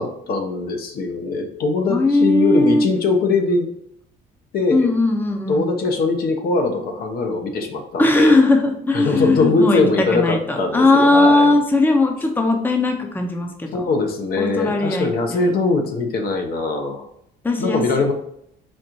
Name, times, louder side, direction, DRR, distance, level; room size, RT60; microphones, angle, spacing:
voice 1, 0.0-3.7 4.5-4.9 5.5-8.4 8.9-11.5 13.7-17.1 17.6-18.1, left 3 dB, 65° left, 3 dB, 0.9 m, -21 dB
voice 2, 1.9-2.9 4.7-5.7 8.0-9.8 10.1-13.8 14.4-15.5 17.4-17.8, left 2 dB, 10° left, 3 dB, 0.7 m, -18 dB
4.2 x 2.5 x 4.4 m, 0.74 s
cardioid pair, 110°, 17 cm